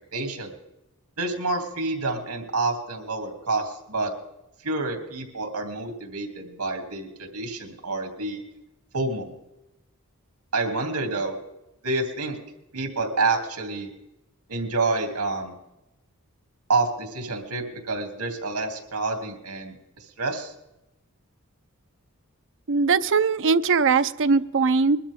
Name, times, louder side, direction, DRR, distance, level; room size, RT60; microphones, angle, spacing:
voice 1, 0.1-0.5 1.2-4.1 4.6-8.4 8.9-9.3 10.5-11.4 11.8-12.4 12.7-13.9 14.5-15.6 16.7-19.8 20.2-20.5, right 3 dB, 90° right, 3 dB, 3.0 m, -28 dB
voice 2, 22.7-25.0, right 4 dB, 60° right, 12 dB, 0.6 m, -20 dB
22.0 x 12.5 x 3.7 m, 0.92 s
head